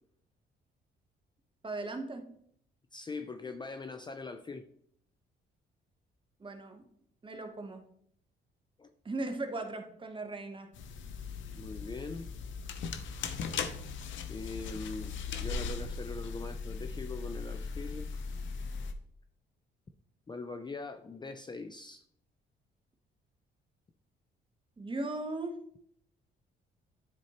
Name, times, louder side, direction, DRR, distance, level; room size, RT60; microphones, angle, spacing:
voice 1, 1.6-2.2 6.4-6.9 7.2-7.8 9.0-10.7 24.8-25.6, right 2 dB, 25° right, 6 dB, 1.1 m, -38 dB
voice 2, 2.9-4.7 8.8-8.9 11.5-12.3 14.3-18.2 20.3-22.0, left 3 dB, 20° left, 8 dB, 0.5 m, -42 dB
sound 1, 10.7-18.9, left 5 dB, 75° left, 0.7 m, -38 dB
10.5 x 4.5 x 2.9 m, 0.67 s
cardioid pair, 90°, 20 cm